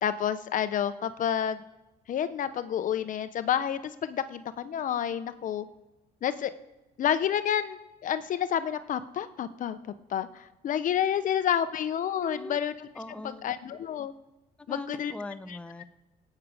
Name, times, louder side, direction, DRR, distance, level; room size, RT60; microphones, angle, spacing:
voice 1, 0.0-1.6 2.1-5.6 6.2-6.5 7.0-12.9 13.2-14.1 14.7-15.1 15.5-15.6, left 9 dB, 50° left, 12 dB, 0.7 m, -29 dB
voice 2, 12.2-12.6 12.9-13.5 14.7-15.8, left 2 dB, 5° left, 9 dB, 0.7 m, -40 dB
18.0 x 8.5 x 4.9 m, 1.0 s
cardioid pair, 110°, 17 cm